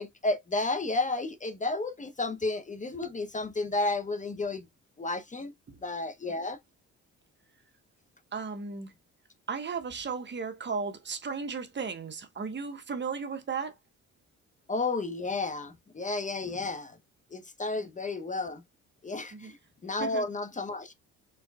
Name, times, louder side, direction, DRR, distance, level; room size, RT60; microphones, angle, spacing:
voice 1, 0.0-4.7 5.0-5.5 5.8-6.6 14.7-17.0 17.3-18.6 19.0-19.6 19.8-20.9, left 2 dB, 25° left, 0.7 m, -32 dB
voice 2, 8.3-8.9 9.5-13.7 17.8-17.9 19.3-19.5 20.0-20.2, right 5 dB, 35° right, 1.1 m, -35 dB
4.5 x 3.7 x 2.2 m
cardioid pair, 90°, 30 cm